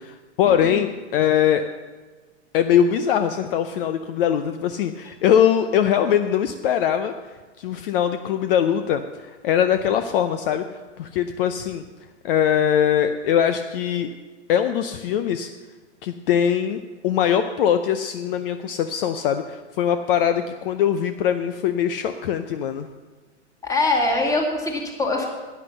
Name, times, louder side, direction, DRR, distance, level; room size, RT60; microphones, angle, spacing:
voice 1, 0.0-1.6 2.5-7.1 7.6-11.8 12.2-14.1 14.5-15.5 16.0-22.9, left 9 dB, 50° left, 9 dB, 0.7 m, -22 dB
voice 2, 23.6-25.3, left 2 dB, 10° left, 0 dB, 2.1 m, -23 dB
10.5 x 9.8 x 7.0 m, 1.3 s
hypercardioid pair, 130°, 36 cm